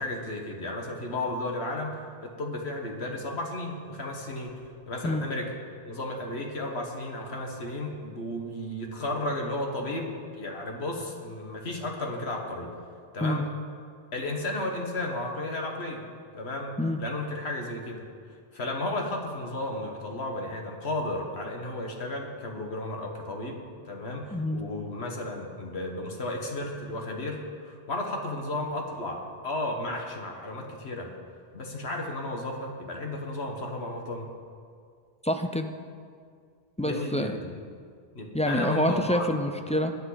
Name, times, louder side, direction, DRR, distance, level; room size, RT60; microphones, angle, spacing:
voice 1, 0.0-5.5 5.8-12.7 13.1-13.5 14.1-16.0 16.3-18.0 18.5-31.1 31.5-34.3 36.8-37.6 38.1-39.3, left 1 dB, 90° left, 1 dB, 1.8 m, -33 dB
voice 2, 35.2-35.7 36.8-37.4 38.3-40.0, left 1 dB, 10° left, 5 dB, 0.4 m, -27 dB
21.5 x 9.0 x 4.0 m, 2.1 s
omnidirectional pair, 1.0 m